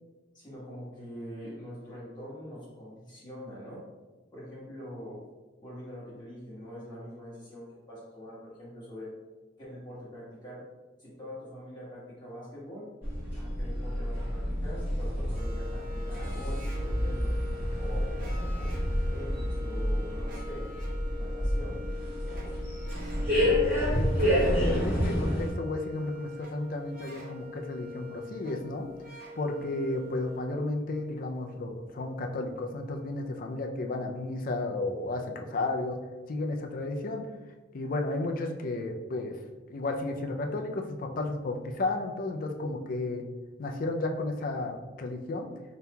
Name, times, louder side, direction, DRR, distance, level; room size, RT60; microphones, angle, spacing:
voice 1, 0.3-3.8 4.3-5.2 5.6-9.1 9.6-10.6 11.0-12.9 13.3-17.3 17.8-18.7 19.1-20.7 21.2-21.8, equal, 25° left, -9 dB, 1.3 m, -44 dB
sound 1, 13.0-25.5, equal, 10° right, 1.2 m, -29 dB
sound 2, 15.3-33.5, left 3 dB, 45° right, 0.8 m, -45 dB
voice 2, 23.9-28.9 29.4-36.0 36.3-37.3 37.7-39.4 39.7-43.2 43.6-45.5, left 2 dB, 45° left, 4 dB, 0.3 m, -33 dB
5.2 x 2.9 x 2.2 m, 1.2 s
head